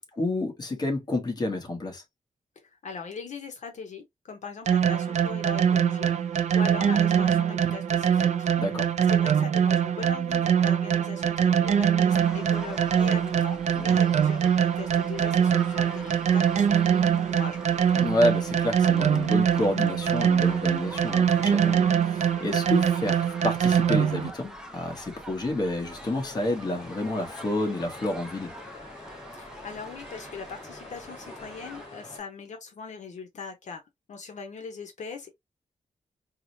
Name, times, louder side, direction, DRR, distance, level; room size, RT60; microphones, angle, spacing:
voice 1, 0.0-2.0 8.6-8.9 13.7-14.0 17.9-28.5, left 1 dB, 30° left, 1.0 m, -29 dB
voice 2, 2.6-8.5 9.1-16.8 17.2-17.6 29.3-33.8 34.1-35.4, left 5 dB, 65° left, 0.8 m, -40 dB
sound 1, 4.7-24.3, right 8 dB, 60° right, 0.4 m, -23 dB
sound 2, 12.1-31.9, equal, 5° right, 0.5 m, -45 dB
sound 3, 25.9-32.2, left 2 dB, 45° left, 2.1 m, -46 dB
4.7 x 2.1 x 2.6 m
wide cardioid pair, 175°, 13 cm